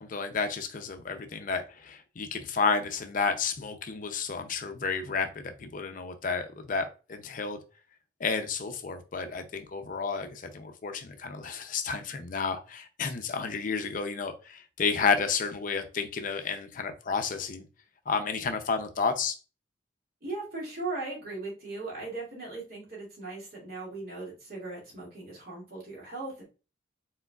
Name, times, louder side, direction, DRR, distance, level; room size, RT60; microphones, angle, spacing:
voice 1, 0.0-5.3 5.6-7.6 8.2-17.6 18.1-19.4, left 5 dB, 45° left, 0.5 m, -31 dB
voice 2, 20.2-26.4, right 3 dB, 55° right, 2.3 m, -38 dB
4.7 x 3.7 x 2.3 m
head